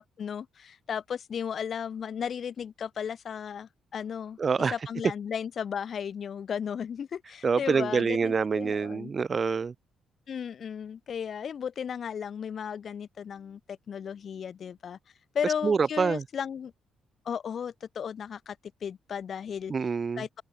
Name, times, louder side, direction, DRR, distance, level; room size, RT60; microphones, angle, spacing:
voice 1, 0.0-4.4 4.7-9.1 10.3-15.0 15.3-16.7 17.2-18.6 18.8-19.7 20.2-20.4, left 7 dB, 55° left, 0.9 m, -35 dB
voice 2, 4.4-4.7 7.4-9.7 15.6-16.2 19.7-20.2, right 5 dB, 40° right, 0.3 m, -26 dB
cardioid pair, 90°, 0 cm